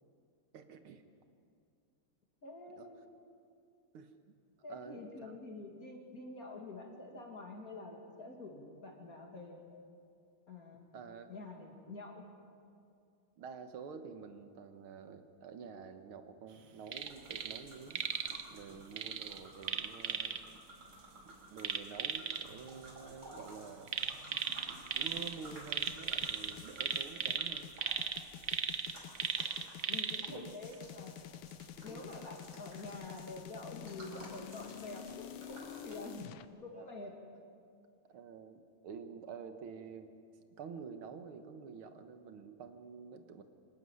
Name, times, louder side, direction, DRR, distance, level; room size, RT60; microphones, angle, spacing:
voice 1, 0.5-1.0 2.8-2.9 3.9-4.4 4.7-5.3 10.9-11.3 13.4-18.0 18.5-20.6 21.3-23.9 24.6-27.7 30.3-30.6 31.8-32.1 36.7-36.9 38.1-40.1 40.6-43.4, right 6 dB, 75° right, 8 dB, 2.0 m, -49 dB
voice 2, 2.4-3.1 4.6-9.8 10.5-10.9 11.3-12.2 29.9-31.1 31.8-36.3 36.6-37.1, left 2 dB, 40° left, 1 dB, 2.8 m, -47 dB
sound 1, 16.9-36.2, right 1 dB, 30° right, 5.6 m, -55 dB
sound 2, 16.9-17.6 17.9-18.4 19.0-20.4 21.6-22.4 23.9-25.3 25.7-30.3 30.7-30.8, right 8 dB, 55° right, 1.0 m, -36 dB
sound 3, 25.2-36.5, left 11 dB, 85° left, 1.6 m, -49 dB
25.5 x 13.0 x 9.6 m, 2.4 s
omnidirectional pair, 2.4 m